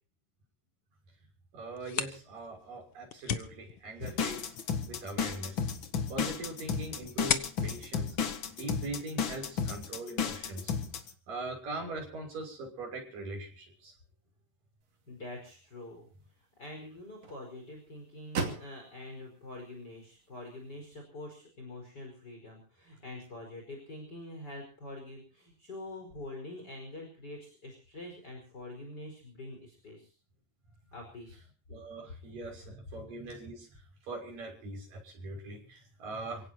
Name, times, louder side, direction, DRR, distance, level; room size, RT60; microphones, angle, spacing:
voice 1, 1.5-4.6 4.9-5.6 6.1-8.2 8.6-10.7 11.3-13.9 31.7-36.5, right 2 dB, 75° right, 1 dB, 7.8 m, -41 dB
sound 1, 1.6-9.2, left 9 dB, 70° left, 1.2 m, -40 dB
sound 2, 4.0-11.1, left 6 dB, 45° left, 1.9 m, -33 dB
sound 3, 14.8-21.0, right 5 dB, 50° right, 3.6 m, -43 dB
voice 2, 15.1-16.1 16.6-30.1 30.9-31.4, left 1 dB, 30° left, 2 dB, 5.5 m, -45 dB
28.0 x 17.5 x 2.9 m, 0.38 s
omnidirectional pair, 3.9 m